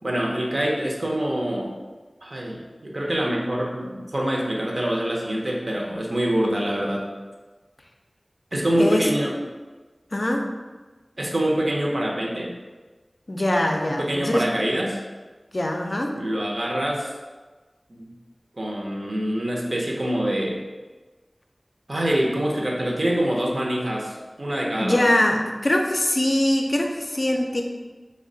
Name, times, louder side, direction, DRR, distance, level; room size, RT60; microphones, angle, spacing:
voice 1, 0.0-1.7 2.2-7.1 8.5-9.3 11.2-12.5 14.0-15.0 16.2-17.1 17.9-18.1 18.6-20.6 21.9-25.1, right 1 dB, 60° right, -2 dB, 0.6 m, -25 dB
voice 2, 8.8-9.1 10.1-10.4 13.3-14.5 15.5-16.1 24.8-27.6, left 1 dB, 50° left, 2 dB, 0.4 m, -22 dB
3.2 x 2.1 x 3.8 m, 1.3 s
wide cardioid pair, 50°, 0 cm